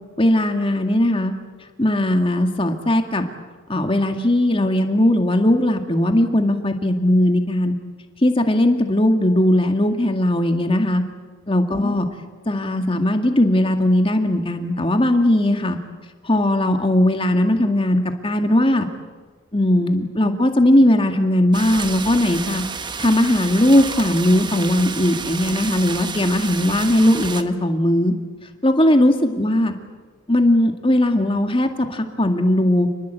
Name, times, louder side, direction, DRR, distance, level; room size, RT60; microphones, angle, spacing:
voice 1, 0.2-1.3 1.8-3.3 3.7-7.7 8.2-11.0 11.5-12.1 12.5-15.8 16.2-18.9 19.5-22.6 23.0-28.1 28.6-29.7 30.3-32.9, left 1 dB, 25° left, 5 dB, 2.1 m, -18 dB
sound 1, 21.5-27.4, right 5 dB, 20° right, 1.1 m, -30 dB
29.0 x 20.5 x 8.3 m, 1.4 s
head